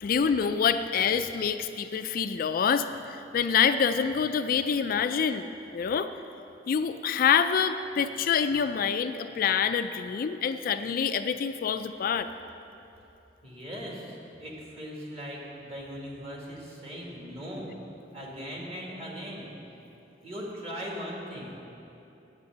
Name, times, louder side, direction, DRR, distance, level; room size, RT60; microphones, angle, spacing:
voice 1, 0.0-6.1 6.7-12.3, left 7 dB, 50° left, 10 dB, 0.3 m, -26 dB
voice 2, 13.4-17.7 18.1-19.5 20.2-21.6, equal, 35° right, -3 dB, 2.1 m, -39 dB
8.6 x 7.4 x 7.8 m, 2.9 s
head